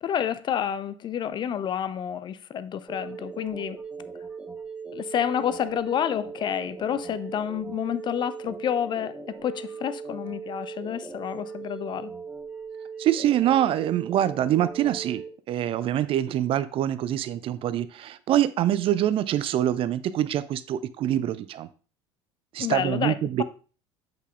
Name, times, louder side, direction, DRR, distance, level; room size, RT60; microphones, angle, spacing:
voice 1, 0.0-3.8 4.9-12.1 22.6-23.4, left 9 dB, 30° left, 0.4 m, -29 dB
sound 1, 2.9-15.3, right 5 dB, 10° right, 1.1 m, -39 dB
voice 2, 13.0-21.7 22.5-23.4, right 12 dB, 35° right, 0.4 m, -25 dB
8.1 x 6.0 x 2.3 m
figure-of-eight pair, 65°, 15 cm